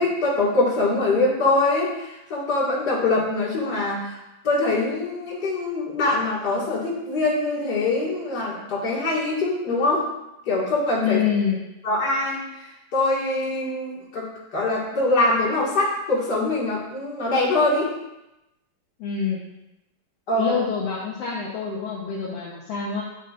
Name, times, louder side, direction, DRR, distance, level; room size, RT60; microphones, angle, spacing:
voice 1, 0.0-10.0 10.5-11.2 11.8-12.4 12.9-17.9 20.3-20.5, left 2 dB, 35° left, -6 dB, 2.0 m, -23 dB
voice 2, 11.0-11.6 19.0-19.4 20.3-23.0, left 7 dB, 70° left, -5 dB, 1.5 m, -26 dB
10.5 x 6.8 x 2.5 m, 0.93 s
omnidirectional pair, 4.1 m